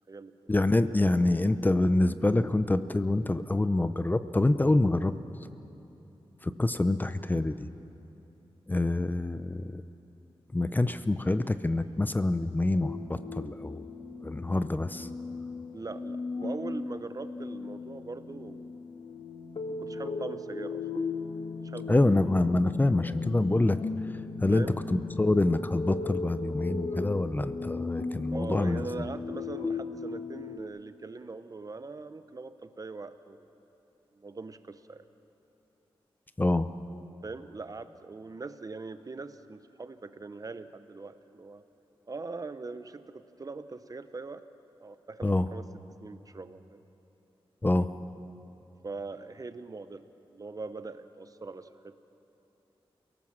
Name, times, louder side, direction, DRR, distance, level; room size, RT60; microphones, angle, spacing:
voice 1, 0.5-5.1 6.4-7.7 8.7-9.8 10.5-13.9 14.2-15.1 21.9-23.8 24.4-24.6 24.9-28.8 36.4-36.7 45.2-45.5 47.6-47.9, left 2 dB, 20° left, 12 dB, 0.6 m, -26 dB
sound 1, 12.8-30.6, left 4 dB, 55° left, 1.0 m, -37 dB
voice 2, 15.7-18.8 19.7-20.8 21.6-22.1 24.5-24.7 28.3-33.5 34.1-35.1 37.2-41.6 42.1-44.5 44.8-45.7 46.0-46.8 48.8-52.0, right 3 dB, 40° right, 11 dB, 0.9 m, -41 dB
29.0 x 18.0 x 7.5 m, 2.9 s
wide cardioid pair, 105°, 10 cm